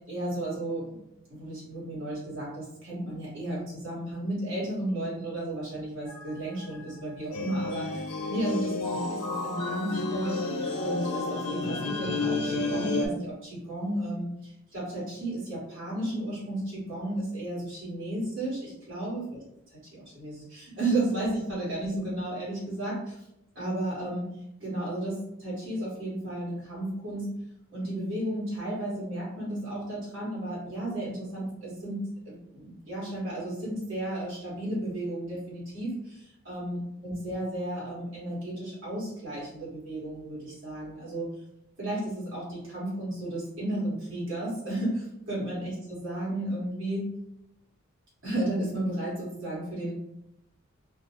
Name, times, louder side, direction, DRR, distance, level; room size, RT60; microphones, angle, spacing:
voice 1, 0.1-1.0 1.3-19.4 19.9-23.2 23.5-24.3 24.6-27.3 27.7-41.3 41.8-47.1 48.2-50.0, right 1 dB, 55° right, -8 dB, 1.5 m, -33 dB
sound 1, 6.1-6.3 6.6-6.9 7.3-13.1, left 3 dB, 90° left, 0.4 m, -31 dB
2.8 x 2.0 x 2.9 m, 0.81 s
head